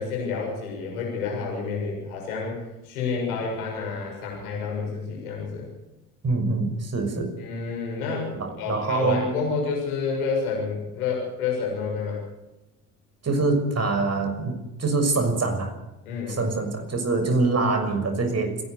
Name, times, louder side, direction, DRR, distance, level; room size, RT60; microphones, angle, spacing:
voice 1, 0.0-5.7 7.4-8.3 8.6-12.2 16.1-16.4, left 5 dB, 90° left, -1 dB, 7.0 m, -29 dB
voice 2, 6.2-7.3 8.4-9.4 13.2-15.7 16.3-18.6, right 3 dB, 35° right, 6 dB, 6.5 m, -24 dB
29.5 x 11.5 x 8.2 m, 1.0 s
hypercardioid pair, 65°, 42 cm